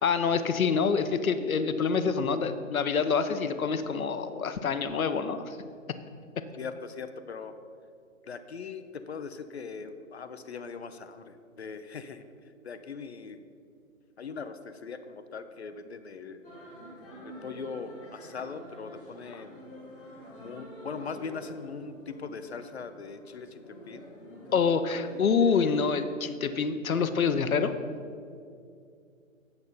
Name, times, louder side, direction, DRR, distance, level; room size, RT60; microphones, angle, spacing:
voice 1, 0.0-5.6 19.3-19.4 24.5-27.7, left 5 dB, 85° left, 10 dB, 0.8 m, -26 dB
voice 2, 6.6-7.5 8.2-12.3 12.6-13.4 14.2-16.4 17.2-19.6 20.4-24.0, left 5 dB, 50° left, 10 dB, 0.6 m, -40 dB
sound 1, 16.4-25.9, equal, 5° left, 0.8 m, -47 dB
8.0 x 8.0 x 5.4 m, 2.4 s
hypercardioid pair, 165°, 41 cm